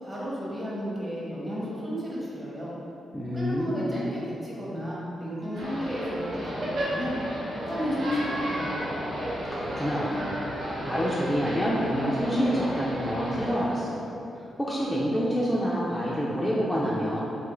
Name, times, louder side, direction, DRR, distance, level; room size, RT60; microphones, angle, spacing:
voice 1, 0.0-2.7 3.3-7.2 7.5-8.9, equal, 15° right, -7 dB, 0.8 m, -33 dB
voice 2, 3.1-4.0 9.5-14.0 14.6-17.2, equal, 5° left, -7 dB, 0.3 m, -27 dB
Wind instrument woodwind instrument, 5.2-8.6 9.1-12.9, equal, 40° right, 1.1 m, -41 dB
sound 1, 5.5-13.6, equal, 75° right, 0.9 m, -33 dB
3.1 x 2.4 x 3.0 m, 2.8 s
cardioid pair, 110°, 0 cm